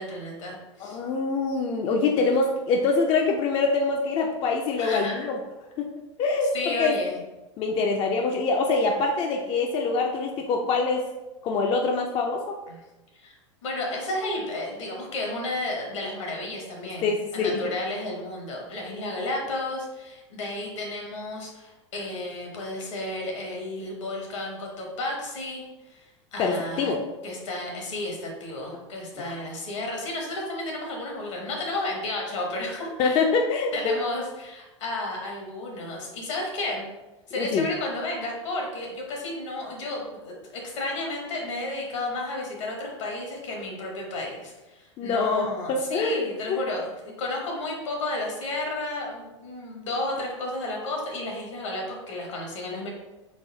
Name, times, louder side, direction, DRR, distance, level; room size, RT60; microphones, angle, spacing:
voice 1, 0.0-1.0 2.1-2.3 4.8-5.1 6.5-7.2 12.7-12.8 13.1-13.4 13.6-26.9 27.2-33.2 33.7-36.9 37.3-40.3 40.6-52.9, left 2 dB, 75° left, 0 dB, 1.2 m, -32 dB
voice 2, 0.8-5.4 5.8-5.9 6.2-7.0 7.6-11.0 11.4-12.5 17.0-17.6 26.4-27.0 29.2-29.3 33.0-34.0 37.4-37.7 45.0-46.2 46.5-46.6, left 4 dB, 35° left, 2 dB, 0.4 m, -25 dB
4.0 x 2.0 x 3.7 m, 1.1 s
hypercardioid pair, 100°, 16 cm